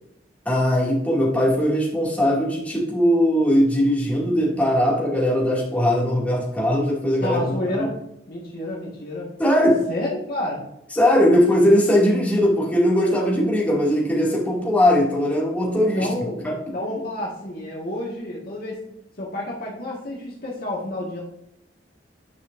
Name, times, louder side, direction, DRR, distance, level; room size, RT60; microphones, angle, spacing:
voice 1, 0.5-7.9 9.4-9.9 10.9-16.1 16.4-16.6, equal, 10° left, -5 dB, 2.4 m, -20 dB
voice 2, 7.2-7.9 8.3-9.3 9.9-10.6 15.8-18.8 19.2-21.2, left 1 dB, 55° left, -4 dB, 1.8 m, -30 dB
10.5 x 5.5 x 2.6 m, 0.81 s
head